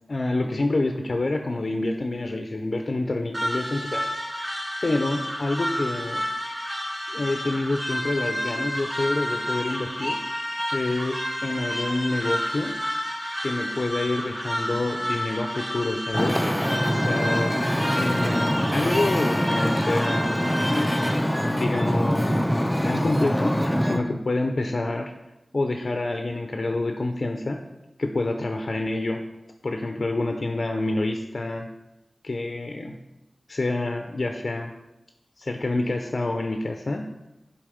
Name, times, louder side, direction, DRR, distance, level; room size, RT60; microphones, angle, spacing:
voice 1, 0.1-4.1 4.8-6.2 7.1-10.2 10.7-12.8 13.4-16.4 16.8-20.3 21.2-22.4 22.8-25.1 25.5-27.6 28.0-29.2 29.6-31.7 32.2-33.0 33.5-34.7 35.4-37.1, left 2 dB, 60° left, 4 dB, 0.5 m, -27 dB
sound 1, 3.3-21.1, equal, 20° right, 1.5 m, -30 dB
Wind / Ocean, 16.1-24.0, equal, 5° left, 0.5 m, -24 dB
7.4 x 4.3 x 5.0 m, 0.92 s
wide cardioid pair, 75°, 0 cm